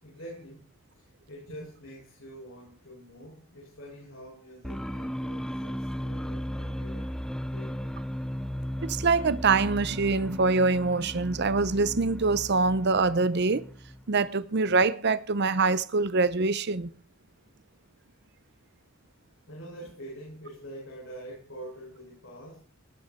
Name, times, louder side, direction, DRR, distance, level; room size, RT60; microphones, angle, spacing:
voice 1, 0.0-7.2 7.5-7.9 19.5-22.6, equal, 70° left, 6.8 m, -45 dB
sound 1, 4.6-14.2, equal, 5° left, 0.6 m, -36 dB
voice 2, 8.8-13.6 14.1-16.9, right 4 dB, 55° right, 0.7 m, -24 dB
19.0 x 8.5 x 4.6 m
head